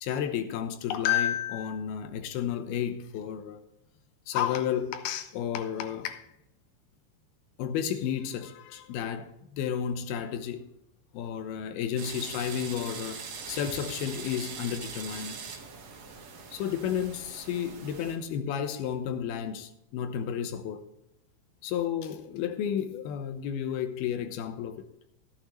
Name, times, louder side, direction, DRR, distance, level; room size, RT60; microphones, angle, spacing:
voice 1, 0.0-3.6 4.3-6.3 7.6-10.6 11.1-15.4 16.5-20.8 21.6-24.9, left 9 dB, 75° left, 2.6 m, -32 dB
sound 1, 12.0-18.2, right 5 dB, 55° right, 2.0 m, -42 dB
13.5 x 11.5 x 3.2 m
omnidirectional pair, 4.9 m